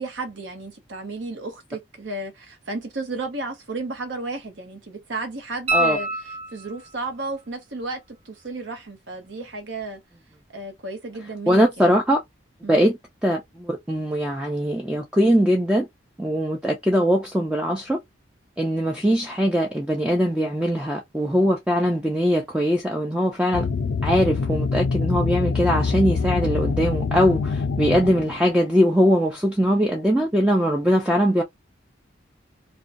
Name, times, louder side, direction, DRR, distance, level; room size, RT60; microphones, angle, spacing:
voice 1, 0.0-10.0 10.5-11.9 12.6-12.9, right 3 dB, 70° right, 0.8 m, -33 dB
sound 1, 5.7-7.0 9.8-9.9, right 2 dB, 30° right, 0.7 m, -26 dB
voice 2, 11.5-12.2 12.7-12.9 13.2-15.9 16.2-18.0 18.6-23.7 24.0-31.4, equal, 5° right, 0.3 m, -21 dB
sound 2, 23.5-28.6, left 4 dB, 85° left, 0.4 m, -25 dB
2.5 x 2.2 x 2.5 m
head